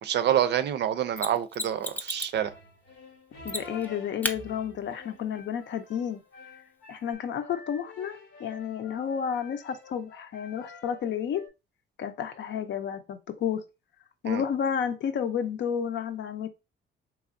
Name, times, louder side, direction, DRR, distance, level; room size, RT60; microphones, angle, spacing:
voice 1, 0.0-2.5 14.2-14.4, right 10 dB, 60° right, 0.5 m, -27 dB
Mechanisms, 1.2-2.4 3.5-3.9 4.2-4.4 7.1-7.2, left 1 dB, 10° left, 0.5 m, -33 dB
sound 1, 2.3-11.5, left 2 dB, 90° left, 1.0 m, -48 dB
voice 2, 3.4-6.2 6.9-11.4 12.0-13.6 14.2-16.5, left 8 dB, 65° left, 0.6 m, -31 dB
3.4 x 3.0 x 2.5 m
cardioid pair, 90°, 20 cm